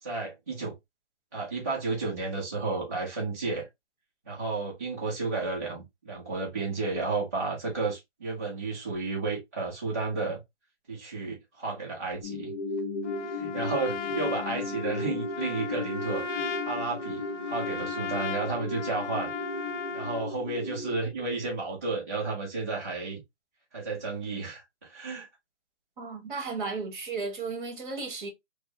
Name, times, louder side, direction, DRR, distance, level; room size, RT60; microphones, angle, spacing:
voice 1, 0.0-0.7 1.3-3.7 4.3-10.4 10.9-12.5 13.3-19.3 19.9-23.2 23.7-25.3, right 3 dB, 15° right, 0.5 m, -32 dB
sound 1, 12.2-21.0, left 2 dB, 40° left, 0.9 m, -35 dB
Trumpet, 13.0-20.3, left 6 dB, 80° left, 0.7 m, -37 dB
voice 2, 26.0-28.3, right 4 dB, 45° right, 1.4 m, -34 dB
4.6 x 2.0 x 2.7 m
hypercardioid pair, 160°, 36 cm